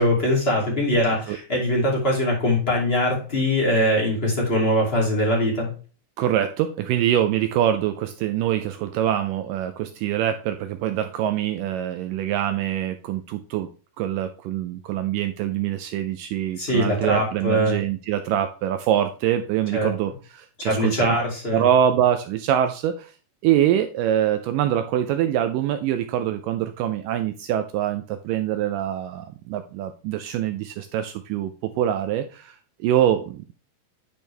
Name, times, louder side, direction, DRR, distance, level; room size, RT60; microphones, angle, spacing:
voice 1, 0.0-5.7 16.6-17.8 19.7-19.9 20.6-21.6, left 1 dB, 20° left, -3 dB, 2.2 m, -22 dB
voice 2, 6.2-13.7 14.0-21.2 21.5-23.1 23.4-33.4, right 10 dB, 80° right, 8 dB, 2.0 m, -24 dB
10.5 x 4.5 x 3.3 m, 0.36 s
omnidirectional pair, 4.2 m